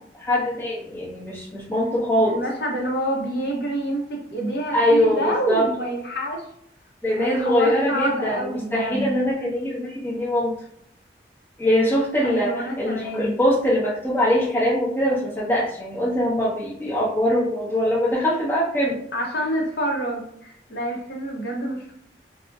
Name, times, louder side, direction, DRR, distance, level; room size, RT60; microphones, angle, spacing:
voice 1, 0.2-2.4 4.7-5.7 7.0-10.6 11.6-19.0, equal, 10° left, -6 dB, 0.7 m, -22 dB
voice 2, 2.2-6.5 7.2-9.1 12.2-13.4 19.1-21.9, equal, 60° left, -1 dB, 0.7 m, -27 dB
2.5 x 2.0 x 3.5 m, 0.73 s
head